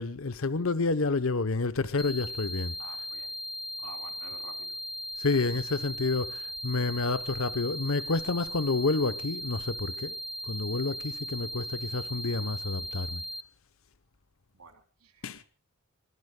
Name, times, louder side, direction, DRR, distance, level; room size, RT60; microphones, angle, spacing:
voice 1, 0.0-2.7 5.2-10.2 10.5-13.2 15.2-15.4, left 3 dB, 65° left, 0.8 m, -29 dB
sound 1, 2.0-13.4, equal, ahead, 0.8 m, -38 dB
voice 2, 2.8-3.3 3.8-4.8 14.5-15.5, right 5 dB, 85° right, 3.3 m, -50 dB
23.0 x 22.0 x 2.3 m
head